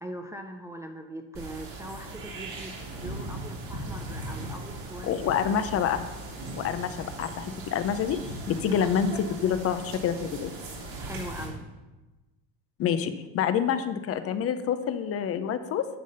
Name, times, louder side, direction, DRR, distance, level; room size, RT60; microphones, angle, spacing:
voice 1, 0.0-5.8 8.5-8.9 11.0-11.6, right 1 dB, 10° right, 3 dB, 0.4 m, -41 dB
sound 1, 1.3-11.5, right 2 dB, 65° right, 3.1 m, -39 dB
voice 2, 5.0-6.0 6.5-8.2 8.5-10.5 12.8-15.9, left 8 dB, 40° left, 11 dB, 0.6 m, -27 dB
10.5 x 3.8 x 6.4 m, 1.1 s
cardioid pair, 130°, 37 cm